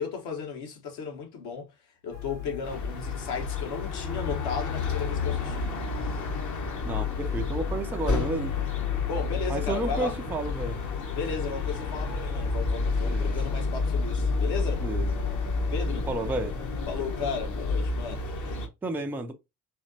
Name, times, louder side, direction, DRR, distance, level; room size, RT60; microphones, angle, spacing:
voice 1, 0.0-1.7 2.0-5.6 9.1-10.1 11.1-14.8 15.7-16.1 16.9-18.3, left 5 dB, 55° left, 1.3 m, -35 dB
sound 1, 2.1-17.9, left 12 dB, 85° left, 0.7 m, -37 dB
sound 2, 2.6-18.7, left 3 dB, 35° left, 1.0 m, -30 dB
voice 2, 6.8-8.6 9.5-10.8 13.0-13.4 14.8-15.1 16.1-16.6 18.8-19.3, right 2 dB, 5° right, 0.4 m, -32 dB
4.1 x 2.8 x 2.7 m
figure-of-eight pair, 45°, 49 cm